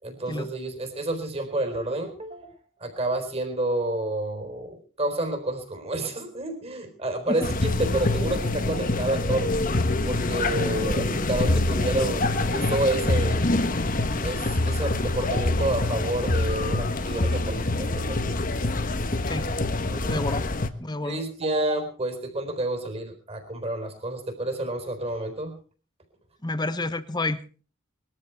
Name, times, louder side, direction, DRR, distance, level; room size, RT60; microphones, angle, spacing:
voice 1, 0.0-2.5 2.8-9.5 10.1-13.4 14.2-18.2 19.9-20.2 21.0-25.6, right 2 dB, 30° right, 6 dB, 4.2 m, -29 dB
sound 1, 7.4-20.7, left 2 dB, 40° left, 1.2 m, -25 dB
voice 2, 20.1-20.5 20.8-21.2 26.4-27.6, left 2 dB, 20° left, 13 dB, 1.0 m, -30 dB
21.5 x 13.0 x 4.7 m, 0.39 s
head